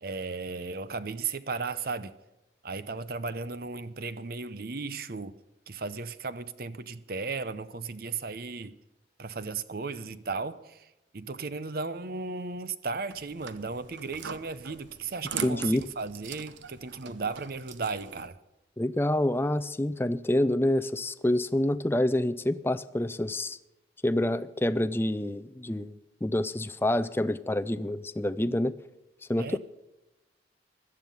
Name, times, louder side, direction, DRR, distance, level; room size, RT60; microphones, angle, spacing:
voice 1, 0.0-2.1 2.6-5.4 5.7-8.8 9.2-10.9 11.1-18.4 29.4-29.6, right 4 dB, 55° right, 0.7 m, -35 dB
sound 1, 13.1-18.3, right 6 dB, 80° right, 1.0 m, -41 dB
voice 2, 15.4-15.8 18.8-23.6 24.0-28.7 29.3-29.6, left 1 dB, 10° left, 0.5 m, -27 dB
16.5 x 12.0 x 5.5 m
head